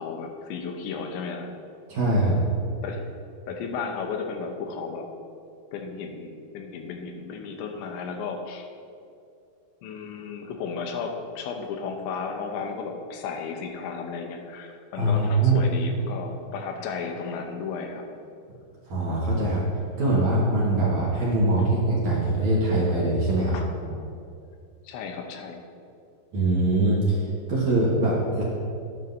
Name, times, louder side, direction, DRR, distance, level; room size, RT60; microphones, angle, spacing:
voice 1, 0.0-1.5 2.8-3.0 3.5-5.1 5.7-8.7 9.8-18.0 23.5-23.7 24.8-25.6, left 5 dB, 85° left, 3 dB, 3.2 m, -34 dB
voice 2, 1.9-2.4 14.9-15.6 18.9-19.7 20.0-23.6 26.3-28.4, right 2 dB, 55° right, -6 dB, 2.2 m, -23 dB
19.0 x 9.4 x 2.7 m, 2.5 s
omnidirectional pair, 5.2 m